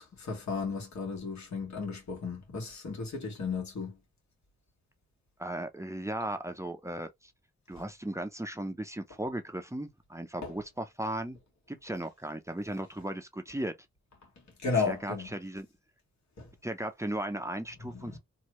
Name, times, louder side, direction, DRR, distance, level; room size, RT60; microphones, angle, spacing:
voice 1, 0.0-4.0 10.4-10.5 14.6-15.3 16.4-16.5 17.8-18.2, left 4 dB, 70° left, 1.3 m, -34 dB
voice 2, 5.4-7.3 7.7-11.4 11.7-13.7 14.8-15.7 16.6-18.2, right 1 dB, 10° right, 0.6 m, -36 dB
2.9 x 2.3 x 3.0 m
cardioid pair, 55°, 30 cm